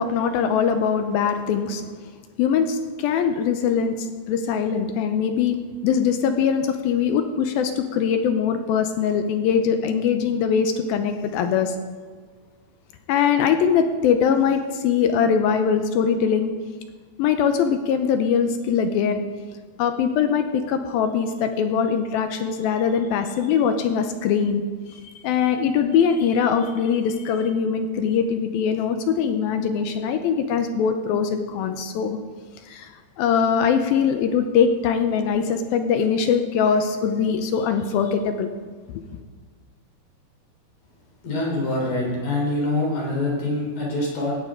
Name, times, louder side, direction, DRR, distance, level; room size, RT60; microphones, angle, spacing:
voice 1, 0.0-2.0 2.4-11.8 13.1-16.5 17.2-19.2 19.8-24.6 24.9-32.2 32.7-38.5, left 7 dB, 75° left, 7 dB, 2.4 m, -22 dB
voice 2, 41.2-44.4, left 2 dB, 60° left, -2 dB, 5.3 m, -25 dB
17.5 x 14.5 x 3.8 m, 1.5 s
omnidirectional pair, 4.6 m